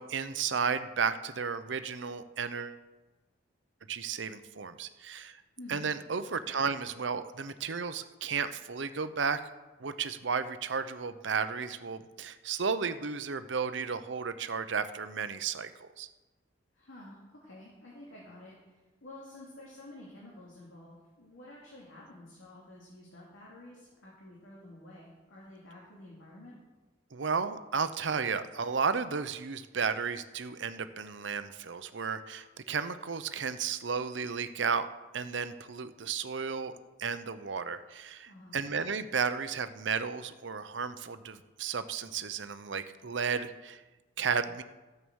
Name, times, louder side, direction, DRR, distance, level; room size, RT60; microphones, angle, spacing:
voice 1, 0.0-2.8 3.9-5.4 5.7-9.4 9.8-16.1 27.1-34.9 35.1-36.7 37.0-43.8 44.2-44.6, right 5 dB, 70° right, 11 dB, 0.7 m, -33 dB
voice 2, 5.6-5.9 16.7-26.6 38.3-38.6, left 1 dB, 85° left, -5 dB, 2.8 m, -50 dB
12.5 x 7.9 x 6.3 m, 1.2 s
head